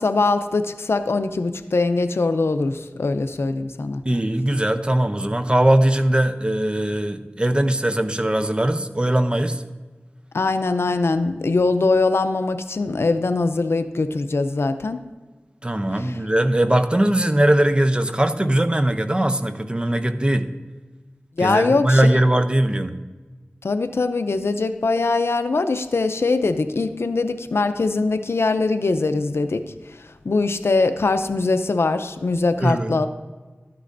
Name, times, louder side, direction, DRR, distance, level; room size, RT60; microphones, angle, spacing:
voice 1, 0.0-4.0 10.3-15.0 16.0-16.2 21.4-22.1 23.6-29.6 30.2-33.1, left 3 dB, 90° left, 9 dB, 0.5 m, -22 dB
voice 2, 4.0-9.6 15.6-20.5 21.4-23.0 32.6-33.0, right 1 dB, 25° right, 8 dB, 0.6 m, -20 dB
13.0 x 9.8 x 2.6 m, 1.3 s
wide cardioid pair, 55°, 4 cm